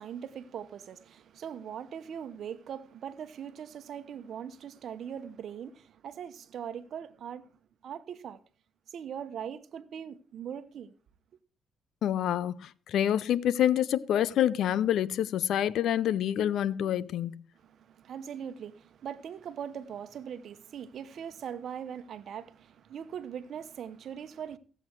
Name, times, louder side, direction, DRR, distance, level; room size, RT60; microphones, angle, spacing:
voice 1, 0.0-7.5 7.8-8.4 8.9-10.9 17.5-24.6, right 8 dB, 65° right, 1.0 m, -41 dB
voice 2, 12.0-17.4, left 10 dB, 75° left, 0.6 m, -27 dB
16.5 x 7.8 x 4.6 m
cardioid pair, 90°, 0 cm